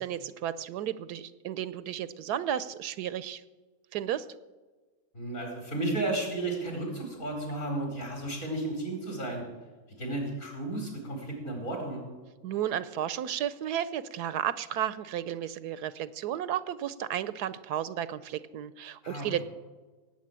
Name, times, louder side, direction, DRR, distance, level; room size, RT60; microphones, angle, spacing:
voice 1, 0.0-3.4 3.9-4.3 12.4-19.4, right 10 dB, 75° right, 15 dB, 1.1 m, -33 dB
voice 2, 5.1-9.4 10.0-12.0 19.0-19.3, right 2 dB, 50° left, 1 dB, 5.2 m, -33 dB
17.5 x 9.0 x 7.5 m, 1.3 s
omnidirectional pair, 1.8 m